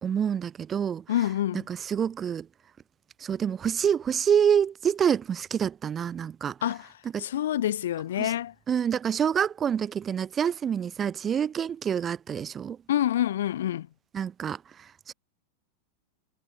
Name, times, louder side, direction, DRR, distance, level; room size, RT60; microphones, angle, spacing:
voice 1, 0.0-1.0 1.7-2.5 3.2-6.5 7.1-7.2 8.2-8.3 8.7-12.8 14.1-14.6 15.1-15.2, right 8 dB, 25° right, 0.7 m, -27 dB
voice 2, 1.1-1.7 6.6-6.9 7.2-8.5 12.9-13.9, left 12 dB, 60° left, 0.5 m, -27 dB
figure-of-eight pair, 90°, 0 cm